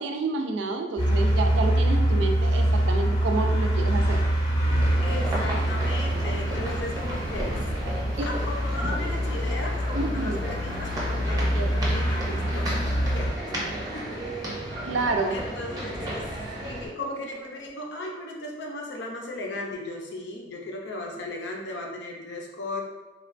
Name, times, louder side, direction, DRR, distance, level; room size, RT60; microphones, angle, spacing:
voice 1, 0.0-4.2 8.2-8.3 10.0-10.4 14.8-15.4, right 3 dB, 85° right, 4 dB, 0.3 m, -29 dB
sound 1, 1.0-13.3, right 1 dB, 25° left, 0.6 m, -25 dB
sound 2, 4.6-16.9, right 1 dB, 20° right, 0.6 m, -34 dB
voice 2, 5.0-7.6 8.2-13.3 13.9-14.2 15.3-16.3 16.6-22.8, left 2 dB, 80° left, 0 dB, 0.5 m, -36 dB
3.0 x 2.2 x 2.4 m, 1.1 s
head